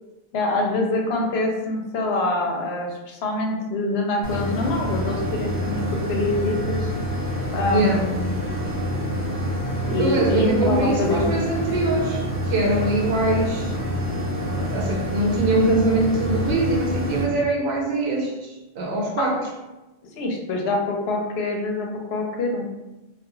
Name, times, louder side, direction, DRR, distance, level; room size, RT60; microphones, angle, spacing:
voice 1, 0.3-6.9 7.5-8.4 9.8-11.3 19.2-19.3 20.2-22.7, left 2 dB, 85° left, 1 dB, 0.8 m, -25 dB
sound 1, 4.2-17.2, equal, 20° left, 0.7 m, -27 dB
voice 2, 7.7-8.1 10.0-13.7 14.6-19.5, right 2 dB, 65° right, 0 dB, 0.8 m, -23 dB
2.3 x 2.2 x 2.9 m, 1.0 s
omnidirectional pair, 1.1 m